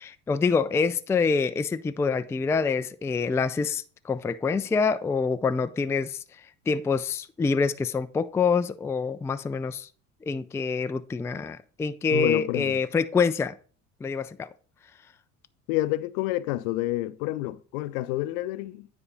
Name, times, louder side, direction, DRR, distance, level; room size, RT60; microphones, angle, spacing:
voice 1, 0.0-9.9 10.2-13.5 14.0-14.5, left 5 dB, 5° left, 0.3 m, -26 dB
voice 2, 12.1-12.8 15.7-18.9, left 16 dB, 70° left, 0.7 m, -29 dB
9.7 x 4.3 x 5.1 m
hypercardioid pair, 75°, 42 cm